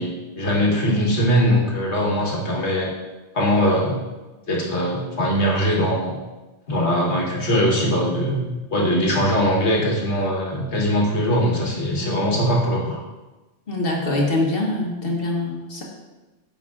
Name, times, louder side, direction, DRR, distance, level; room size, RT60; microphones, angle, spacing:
voice 1, 0.0-2.9 3.3-4.0 4.5-6.2 6.7-13.0, equal, 75° left, -2 dB, 1.6 m, -21 dB
voice 2, 13.7-15.8, left 2 dB, 55° left, -1 dB, 1.3 m, -24 dB
9.6 x 5.4 x 2.4 m, 1.1 s
omnidirectional pair, 1.2 m